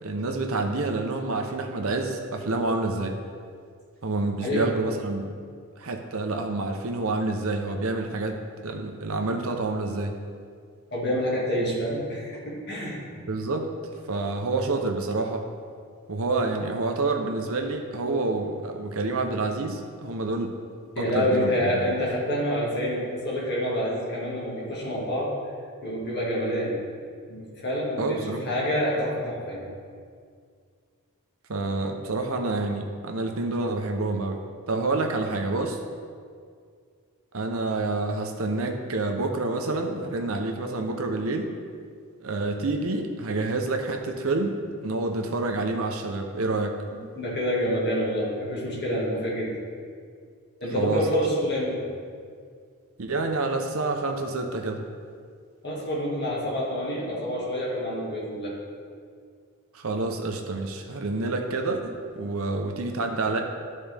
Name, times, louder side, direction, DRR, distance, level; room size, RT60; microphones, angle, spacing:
voice 1, 0.0-3.1 4.0-5.3 5.8-10.1 13.3-13.7 14.1-15.5 16.1-20.5 21.0-21.5 28.0-28.5 31.5-34.4 34.7-35.8 37.3-41.5 42.2-46.8 50.7-51.1 53.0-54.8 59.7-63.4, right 2 dB, 70° right, 4 dB, 0.8 m, -28 dB
voice 2, 10.9-13.0 21.0-25.3 25.8-26.8 27.3-29.7 46.9-49.6 50.6-51.8 55.6-58.5, equal, 50° left, -5 dB, 1.9 m, -27 dB
12.5 x 4.2 x 3.5 m, 2.1 s
head